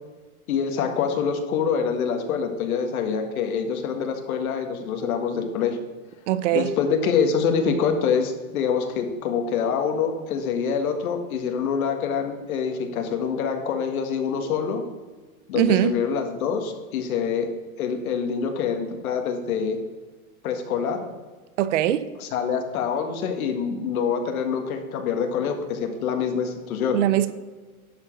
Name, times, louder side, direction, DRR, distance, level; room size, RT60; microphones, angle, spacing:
voice 1, 0.5-5.8 6.5-14.8 15.5-17.5 17.8-19.8 20.4-21.1 22.2-27.0, left 6 dB, 75° left, 1.7 m, -25 dB
voice 2, 6.3-6.7 15.6-15.9 21.6-22.1 26.9-27.3, right 12 dB, 55° right, 0.6 m, -21 dB
11.0 x 5.1 x 6.0 m
supercardioid pair, 170°, 44 cm